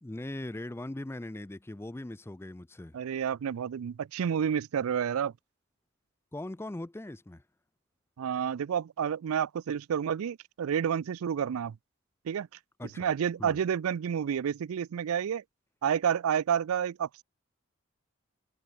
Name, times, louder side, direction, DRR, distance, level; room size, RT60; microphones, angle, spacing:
voice 1, 0.0-3.0 6.3-7.4 12.8-13.1 13.4-13.6, left 1 dB, 10° left, 0.4 m, -40 dB
voice 2, 2.9-5.3 8.2-11.8 12.2-12.5 13.0-15.4 15.8-17.2, right 8 dB, 75° right, 0.4 m, -30 dB
head